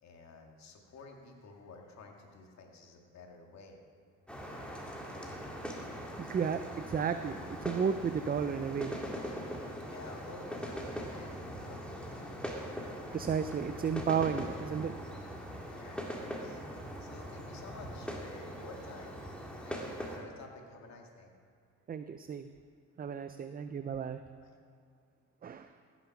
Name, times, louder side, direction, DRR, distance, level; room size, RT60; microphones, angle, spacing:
voice 1, 0.0-3.8 9.9-12.4 15.4-19.2 19.6-21.3 24.4-24.6, left 3 dB, 65° left, 2 dB, 2.1 m, -52 dB
sound 1, 4.3-20.2, equal, 5° left, 2.1 m, -41 dB
voice 2, 6.2-9.0 13.1-14.9 21.9-22.5 23.0-24.2 25.4-25.7, right 7 dB, 30° right, 10 dB, 0.5 m, -33 dB
15.0 x 7.1 x 5.9 m, 2.3 s
cardioid pair, 90°, 30 cm